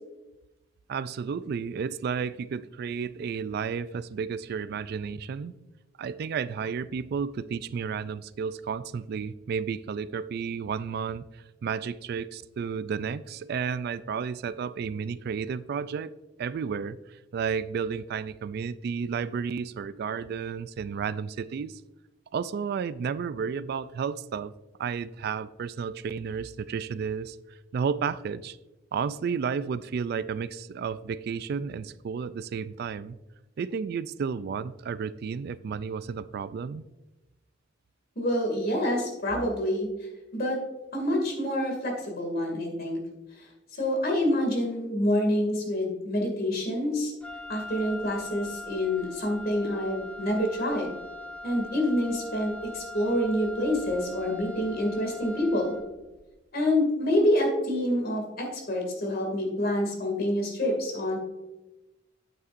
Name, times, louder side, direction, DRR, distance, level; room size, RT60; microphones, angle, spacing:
voice 1, 0.9-5.5 6.0-16.1 16.4-21.8 22.3-24.5 24.8-27.4 27.7-28.6 28.9-33.2 33.6-36.8, right 6 dB, 55° right, 15 dB, 0.3 m, -32 dB
voice 2, 38.2-39.9 40.3-40.6 40.9-43.0 43.8-47.1 47.5-50.9 51.4-55.7 56.5-61.2, left 1 dB, 55° left, 1 dB, 2.3 m, -27 dB
Wind instrument woodwind instrument, 47.2-55.9, left 2 dB, 5° left, 0.8 m, -41 dB
9.4 x 8.5 x 2.5 m, 1.0 s
head